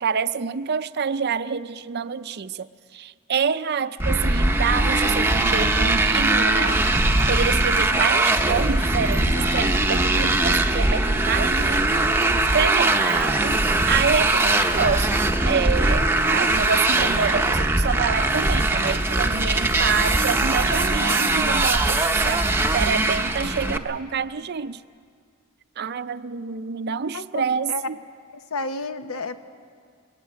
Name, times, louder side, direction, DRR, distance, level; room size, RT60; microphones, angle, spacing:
voice 1, 0.0-2.7 2.9-6.8 7.3-11.9 12.5-22.4 22.7-24.8 25.8-28.0, right 6 dB, 45° right, 14 dB, 0.5 m, -27 dB
Motorcycle, 4.0-23.8, right 2 dB, 10° right, 0.8 m, -21 dB
voice 2, 27.1-27.9 28.3-29.4, left 3 dB, 75° left, 9 dB, 1.1 m, -31 dB
21.0 x 18.0 x 8.3 m, 2.1 s
head